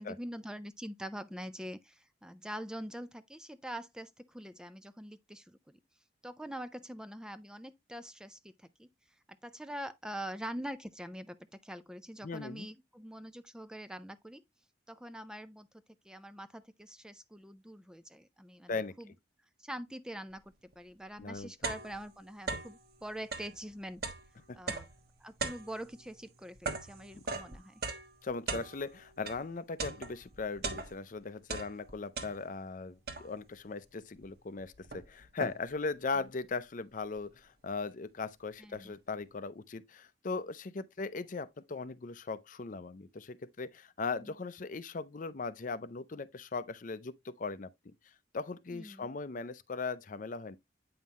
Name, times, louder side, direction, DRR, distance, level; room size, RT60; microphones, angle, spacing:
voice 1, 0.0-5.8 6.2-8.9 9.4-14.4 14.9-15.7 16.0-19.1 19.6-24.0 24.5-24.9 25.2-27.8 36.1-36.2 38.6-39.0 44.2-44.3 48.7-49.1, right 1 dB, 5° right, 0.4 m, -44 dB
voice 2, 12.2-12.7 18.7-18.9 21.2-21.5 24.5-24.7 27.1-27.4 28.2-47.9 48.3-50.6, left 4 dB, 45° left, 0.5 m, -39 dB
sound 1, 20.7-20.8 21.2-22.8 23.2-29.5 29.8-31.2 31.4-32.7 33.1-33.6 34.2-34.3 34.6-35.9, right 3 dB, 60° right, 1.2 m, -40 dB
8.7 x 5.5 x 2.9 m
head